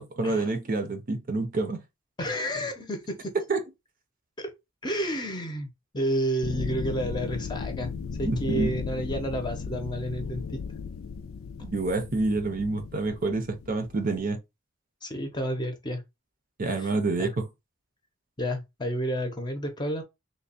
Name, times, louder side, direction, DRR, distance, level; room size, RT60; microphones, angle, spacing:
voice 1, 0.2-1.8 3.5-3.6 8.2-8.7 11.6-14.4 16.6-17.4, right 3 dB, 45° right, 0.6 m, -28 dB
voice 2, 2.2-3.3 4.4-4.5 4.8-7.9 8.2-10.6 15.0-16.0 16.8-16.9 17.2-17.3 18.4-20.0, right 1 dB, 20° left, 0.7 m, -30 dB
sound 1, 6.4-14.2, left 5 dB, 80° left, 0.4 m, -36 dB
3.4 x 2.3 x 4.0 m
head